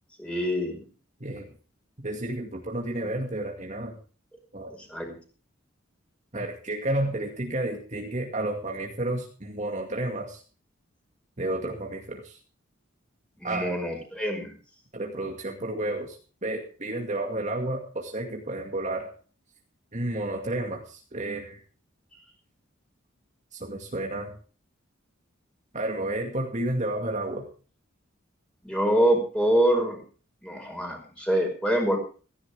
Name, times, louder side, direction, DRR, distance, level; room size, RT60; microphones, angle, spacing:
voice 1, 0.2-0.9 4.9-5.2 13.4-14.5 28.6-30.0 30.4-32.0, right 1 dB, 5° left, 2 dB, 5.6 m, -25 dB
voice 2, 2.0-4.0 4.5-4.7 6.3-10.4 11.4-12.4 13.4-13.7 14.9-19.1 19.9-21.6 23.5-24.3 25.7-27.5, right 1 dB, 35° right, 2 dB, 2.2 m, -31 dB
17.0 x 15.5 x 3.5 m, 0.38 s
head